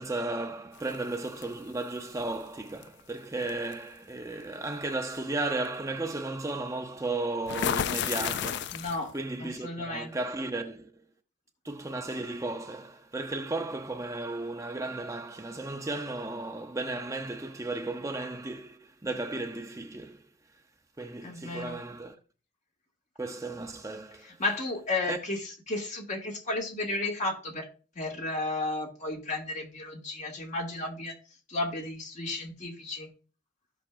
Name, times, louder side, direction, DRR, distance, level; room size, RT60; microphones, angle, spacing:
voice 1, 0.0-8.8 9.1-10.9 11.6-20.2 21.0-22.2 23.2-24.4 25.1-25.2, right 2 dB, 15° right, 0.7 m, -34 dB
sound 1, 0.8-1.5 2.8-3.0 3.5-3.7 7.5-9.2, left 9 dB, 65° left, 0.3 m, -31 dB
voice 2, 8.7-9.1 9.4-10.2 21.2-21.8 24.4-27.7 28.0-31.1 31.5-33.1, left 2 dB, 40° left, 2.2 m, -33 dB
15.5 x 5.9 x 2.5 m
head